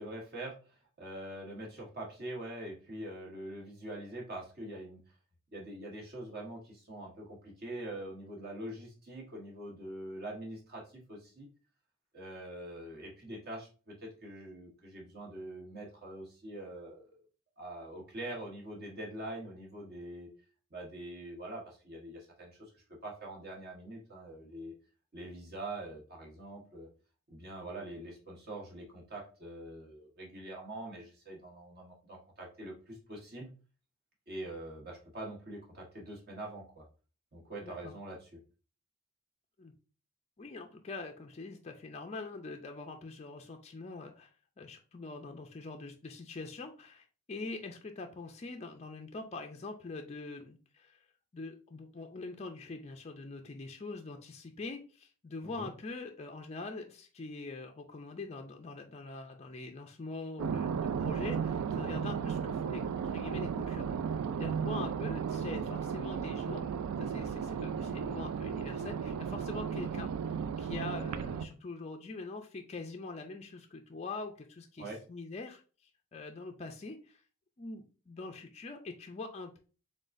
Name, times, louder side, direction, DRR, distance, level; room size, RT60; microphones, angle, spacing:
voice 1, 0.0-5.0 5.5-11.5 12.1-17.2 17.6-20.3 20.7-24.7 25.1-26.9 27.3-33.5 34.3-36.8 37.3-38.3 55.4-55.7 74.8-75.0, right 1 dB, 45° right, -1 dB, 1.3 m, -44 dB
voice 2, 37.6-37.9 39.6-39.7 40.4-44.3 44.6-51.0 51.3-63.9 64.4-66.7 67.0-70.1 70.6-77.2 77.6-79.6, left 3 dB, 30° left, 4 dB, 0.4 m, -43 dB
sound 1, 60.4-71.5, right 7 dB, 85° right, 0.3 m, -35 dB
3.9 x 3.7 x 2.5 m, 0.36 s
head